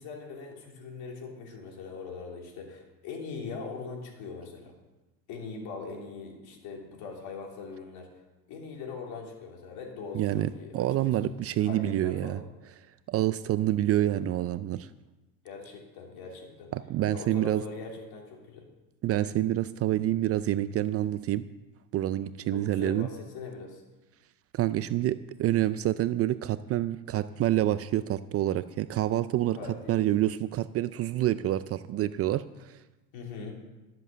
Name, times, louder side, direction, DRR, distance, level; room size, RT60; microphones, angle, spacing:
voice 1, 0.0-4.7 5.3-8.1 8.5-11.1 11.6-12.4 15.4-16.7 17.1-18.7 22.5-23.8 29.5-30.1 33.1-33.5, left 4 dB, 60° left, 0 dB, 3.5 m, -41 dB
voice 2, 10.1-12.4 13.1-14.9 16.7-17.6 19.0-21.4 21.9-23.1 24.5-29.6 29.9-32.8, right 13 dB, 35° right, 14 dB, 0.4 m, -27 dB
13.5 x 7.6 x 6.8 m, 1.1 s
supercardioid pair, 105°, 42 cm